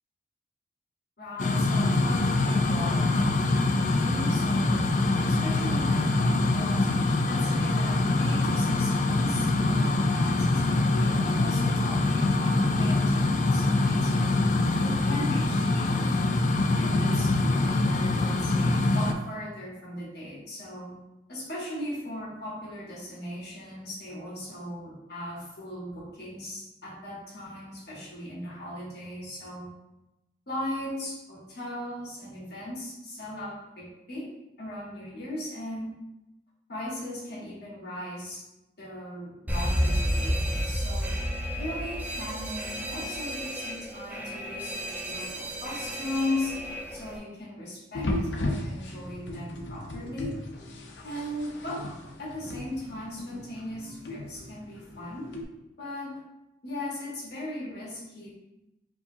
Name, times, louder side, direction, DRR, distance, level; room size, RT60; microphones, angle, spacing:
voice 1, 1.2-4.9 5.2-6.9 7.2-14.3 14.8-16.2 16.8-20.9 21.3-29.7 30.5-34.3 34.6-36.0 36.7-38.4 38.8-40.4 40.7-41.2 41.5-46.6 46.9-48.1 48.4-50.3 51.0-51.9 52.2-55.3 55.8-56.2 56.6-58.3, left 1 dB, 60° left, -5 dB, 1.4 m, -38 dB
sound 1, 1.4-19.1, left 2 dB, 45° left, 0.3 m, -24 dB
Alarm, 39.5-47.2, equal, 10° right, 0.5 m, -31 dB
sound 2, 47.9-55.4, left 1 dB, 80° left, 0.6 m, -36 dB
4.7 x 2.8 x 2.7 m, 0.92 s
head